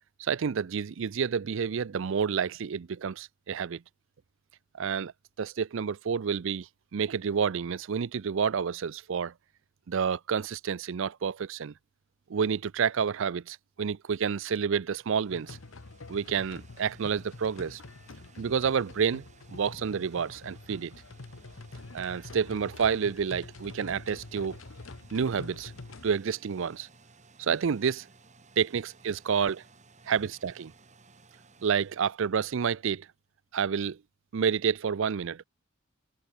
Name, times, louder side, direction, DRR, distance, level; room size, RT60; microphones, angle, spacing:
voice 1, 0.2-3.8 4.8-5.1 5.4-9.3 9.9-11.7 12.3-15.6 16.1-17.8 18.4-19.2 19.5-20.9 21.9-24.6 25.1-25.7 26.0-26.9 27.4-28.1 28.6-29.6 30.1-30.7 31.6-33.1 33.5-34.0 34.3-35.4, right 6 dB, 70° right, 0.5 m, -29 dB
sound 1, 14.8-32.9, right 4 dB, 35° right, 3.0 m, -59 dB
sound 2, 15.3-26.2, left 3 dB, 75° left, 1.1 m, -46 dB
head